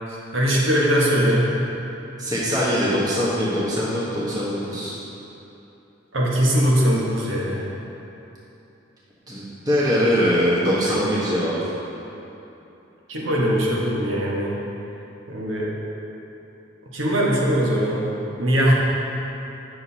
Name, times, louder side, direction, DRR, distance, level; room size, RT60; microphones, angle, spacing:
voice 1, 0.3-1.6 6.1-7.6 10.8-10.9 13.1-14.6 15.3-15.7 16.9-18.0 18.4-18.7, equal, 90° right, -4 dB, 1.3 m, -20 dB
voice 2, 2.2-5.0 9.3-11.5, equal, 20° right, -9 dB, 1.2 m, -22 dB
9.6 x 6.3 x 2.8 m, 2.9 s
head